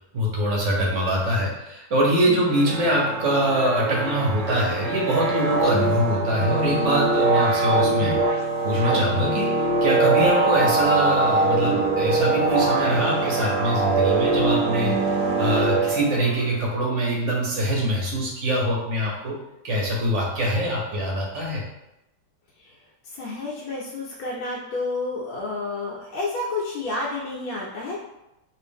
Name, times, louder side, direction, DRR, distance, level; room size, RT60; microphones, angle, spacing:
voice 1, 0.1-19.3 19.6-21.6, right 1 dB, 55° right, -2 dB, 0.8 m, -24 dB
sound 1, 2.4-16.5, right 3 dB, 75° right, 1.2 m, -23 dB
voice 2, 22.6-28.0, left 3 dB, 85° left, -5 dB, 1.5 m, -30 dB
3.2 x 2.7 x 3.4 m, 0.91 s
omnidirectional pair, 2.1 m